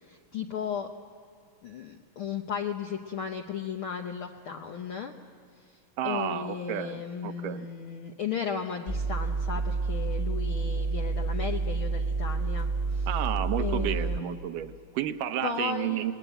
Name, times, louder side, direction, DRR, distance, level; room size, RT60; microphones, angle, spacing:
voice 1, 0.0-0.9 1.6-5.1 6.0-13.1 13.6-14.4 15.4-16.0, left 7 dB, 80° left, 3 dB, 1.2 m, -35 dB
voice 2, 6.0-7.7 13.1-16.1, right 11 dB, 80° right, 9 dB, 2.5 m, -31 dB
sound 1, 8.9-14.2, right 4 dB, 10° right, 0.7 m, -29 dB
27.5 x 19.5 x 9.0 m, 2.3 s
omnidirectional pair, 3.8 m